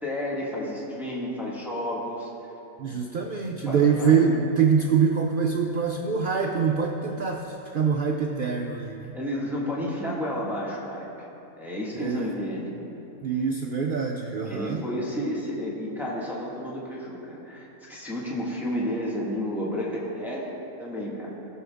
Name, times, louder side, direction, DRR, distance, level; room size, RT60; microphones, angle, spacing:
voice 1, 0.0-2.3 2.9-3.0 3.7-4.2 9.1-11.1 11.6-12.7 14.5-20.5 20.8-21.3, left 1 dB, ahead, -5 dB, 1.4 m, -31 dB
voice 2, 2.8-9.2 12.0-12.3 13.2-14.8, right 6 dB, 80° right, 1 dB, 0.4 m, -24 dB
16.5 x 6.4 x 3.5 m, 3.0 s
omnidirectional pair, 1.6 m